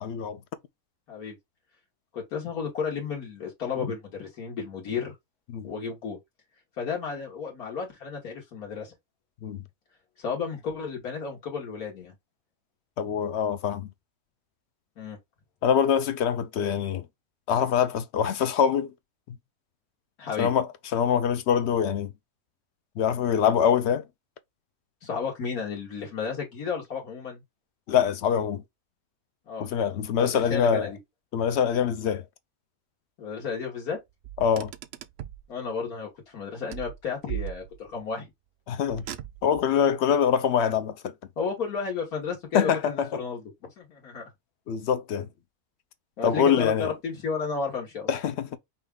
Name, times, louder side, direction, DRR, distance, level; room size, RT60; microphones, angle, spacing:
voice 1, 0.0-0.4 5.5-5.7 9.4-9.6 13.0-13.9 15.6-17.0 17.5-18.9 20.4-20.7 20.9-22.1 23.0-24.0 27.9-28.6 29.6-30.9 31.3-32.2 34.4-34.7 38.7-39.0 39.4-41.1 42.5-43.2 44.7-45.3 46.2-46.9 48.1-48.6, left 8 dB, 65° left, 0.7 m, -24 dB
voice 2, 2.1-5.1 5.6-6.2 6.8-8.9 10.2-12.1 15.0-15.2 20.2-20.5 25.0-27.4 29.5-29.7 30.2-31.0 33.2-34.0 35.5-38.3 41.4-43.4 43.8-44.2 46.2-48.1, left 5 dB, 80° left, 1.8 m, -33 dB
Car, 34.2-35.5 36.7-38.0 38.9-39.7, right 12 dB, 70° right, 0.6 m, -38 dB
5.6 x 2.3 x 3.5 m
omnidirectional pair, 1.5 m